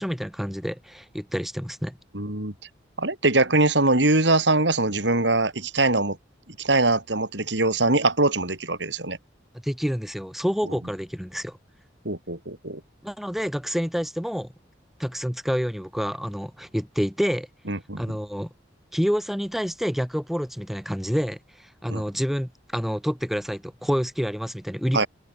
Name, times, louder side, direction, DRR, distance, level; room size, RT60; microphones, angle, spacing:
voice 1, 0.0-1.9 9.6-11.6 13.0-14.5 15.0-17.5 18.0-18.5 18.9-25.0, equal, ahead, 2.4 m, -28 dB
voice 2, 2.1-2.5 3.0-6.2 6.6-9.2 12.0-12.8 17.7-18.0 21.9-22.0 24.9-25.1, right 2 dB, 80° right, 4.9 m, -22 dB
head